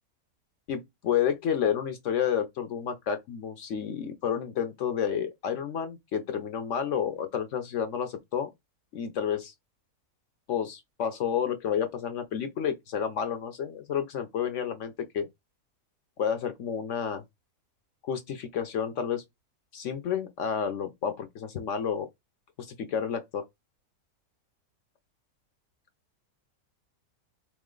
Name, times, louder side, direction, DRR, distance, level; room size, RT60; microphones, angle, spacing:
voice 1, 0.7-8.5 8.9-9.5 10.5-15.3 16.2-17.2 18.0-19.2 19.7-22.1 22.7-23.4, left 8 dB, 60° left, 0.9 m, -30 dB
3.6 x 3.1 x 3.7 m
omnidirectional pair, 1.6 m